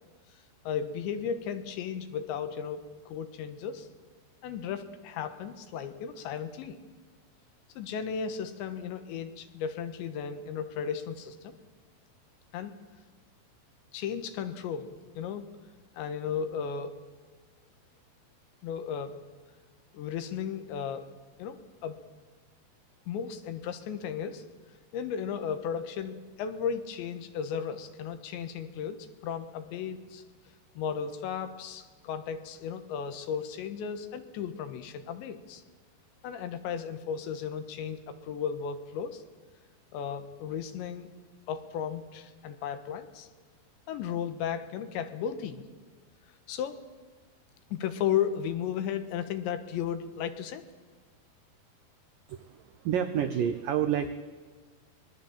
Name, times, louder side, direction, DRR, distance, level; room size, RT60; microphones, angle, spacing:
voice 1, 0.7-3.9 4.4-6.8 7.8-11.6 12.5-12.7 13.9-15.5 16.0-17.0 18.6-19.2 19.9-21.1 21.4-21.6 21.8-22.0 23.1-24.4 24.9-30.2 30.8-35.6 36.2-39.2 39.9-41.1 41.5-43.3 43.9-45.6 46.5-46.8 47.7-50.6, left 7 dB, 80° left, 9 dB, 3.6 m, -35 dB
voice 2, 52.3-54.1, right 9 dB, 80° right, 9 dB, 1.9 m, -29 dB
25.0 x 21.0 x 7.4 m, 1.4 s
omnidirectional pair, 5.2 m